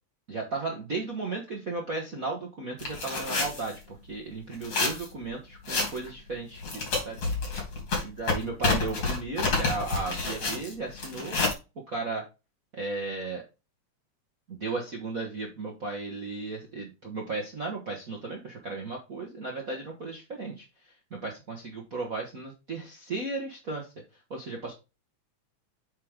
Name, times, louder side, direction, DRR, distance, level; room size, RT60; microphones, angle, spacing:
voice 1, 0.3-7.2 8.0-11.4 11.7-12.2 12.7-13.4 14.5-23.9 24.3-24.7, right 3 dB, 60° right, 0 dB, 0.9 m, -35 dB
sound 1, 2.8-3.7 4.5-5.1 5.7-6.1 6.6-11.5, left 3 dB, 55° left, 3.9 m, -29 dB
8.4 x 4.8 x 3.6 m, 0.28 s
omnidirectional pair, 3.4 m